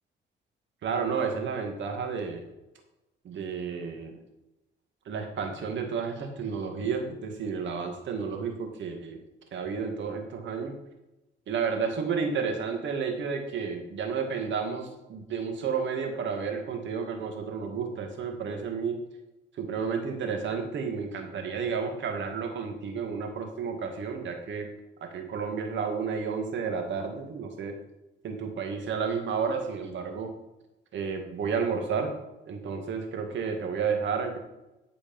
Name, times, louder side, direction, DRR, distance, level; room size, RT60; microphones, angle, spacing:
voice 1, 0.8-2.5 3.2-4.2 5.1-9.2 9.5-10.8 11.5-19.0 19.6-24.7 25.0-27.8 28.2-30.3 30.9-32.1 32.5-34.4, right 5 dB, 70° right, 4 dB, 2.2 m, -31 dB
13.5 x 5.1 x 5.5 m, 0.96 s
cardioid pair, 90°, 20 cm